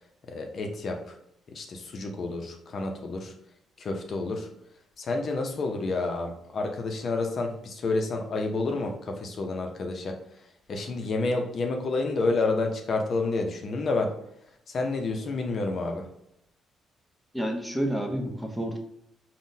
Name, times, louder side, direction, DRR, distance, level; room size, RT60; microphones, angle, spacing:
voice 1, 0.3-1.1 1.5-3.3 3.8-4.5 5.0-10.2 10.7-14.1 14.7-16.1, left 3 dB, 50° left, 3 dB, 0.4 m, -29 dB
voice 2, 17.3-18.8, equal, ahead, 2 dB, 0.6 m, -29 dB
3.6 x 2.0 x 2.6 m, 0.77 s
cardioid pair, 90°, 0 cm